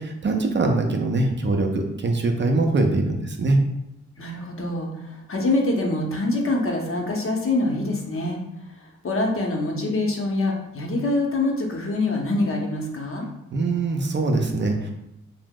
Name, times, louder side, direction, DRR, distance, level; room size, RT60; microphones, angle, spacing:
voice 1, 0.0-3.6 13.5-14.9, right 2 dB, 40° right, 3 dB, 0.5 m, -22 dB
voice 2, 4.2-8.4 8.8-13.3, left 2 dB, 45° left, 1 dB, 0.7 m, -25 dB
2.7 x 2.0 x 3.6 m, 0.86 s
supercardioid pair, 50°, 30 cm